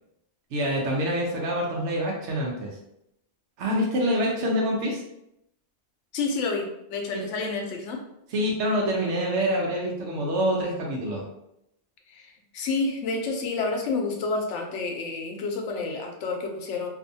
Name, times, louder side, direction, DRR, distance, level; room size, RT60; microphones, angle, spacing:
voice 1, 0.5-2.7 3.6-5.0 7.1-7.2 8.3-11.2, equal, 85° right, -1 dB, 0.9 m, -26 dB
voice 2, 6.1-8.0 12.1-16.9, left 3 dB, 85° left, 2 dB, 0.9 m, -29 dB
2.6 x 2.4 x 2.6 m, 0.81 s
omnidirectional pair, 1.2 m